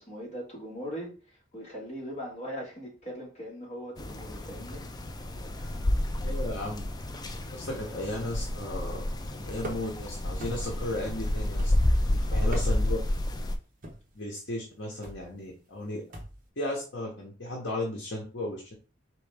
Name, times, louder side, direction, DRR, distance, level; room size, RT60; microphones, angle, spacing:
voice 1, 0.0-4.8 5.5-5.8 12.1-13.0, equal, 35° left, 1.6 m, -41 dB
sound 1, 4.0-13.5, left 1 dB, 20° left, 0.4 m, -30 dB
voice 2, 6.2-6.8 7.5-9.1 9.4-11.7 12.3-13.0 14.1-16.0 16.6-18.7, left 1 dB, 65° left, 1.1 m, -35 dB
sound 2, 9.6-10.0 10.4-10.9 11.6-12.0 12.4-13.0 13.8-14.2 15.0-15.3 16.1-16.5, right 1 dB, 45° right, 1.1 m, -41 dB
4.2 x 3.1 x 3.4 m
head